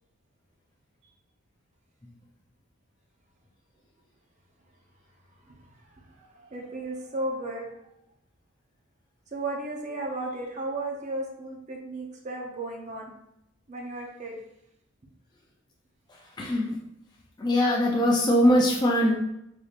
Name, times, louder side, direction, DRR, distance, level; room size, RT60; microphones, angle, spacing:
voice 1, 5.5-7.7 9.3-13.1 13.7-14.4, right 2 dB, 35° right, 0 dB, 0.7 m, -35 dB
voice 2, 16.1-16.8 17.4-19.3, equal, 20° left, -3 dB, 0.4 m, -22 dB
3.9 x 3.3 x 2.4 m, 0.80 s
head